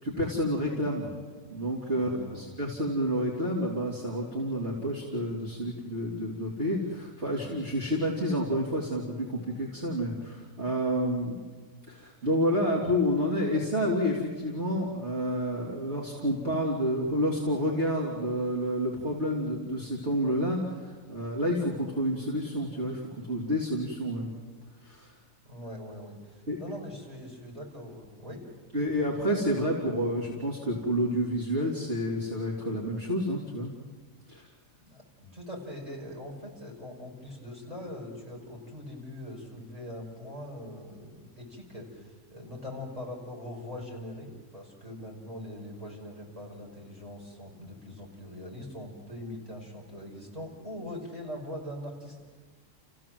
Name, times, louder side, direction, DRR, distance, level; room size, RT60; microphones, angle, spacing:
voice 1, 0.0-1.1 1.5-11.4 11.9-24.3 24.8-25.1 26.5-26.6 28.7-33.7 34.3-34.5, equal, 50° right, -4 dB, 3.4 m, -29 dB
voice 2, 2.0-2.5 25.4-28.4 34.8-35.0 35.3-52.2, left 1 dB, 25° right, -2 dB, 5.7 m, -42 dB
30.0 x 16.0 x 7.7 m, 1.4 s
omnidirectional pair, 1.4 m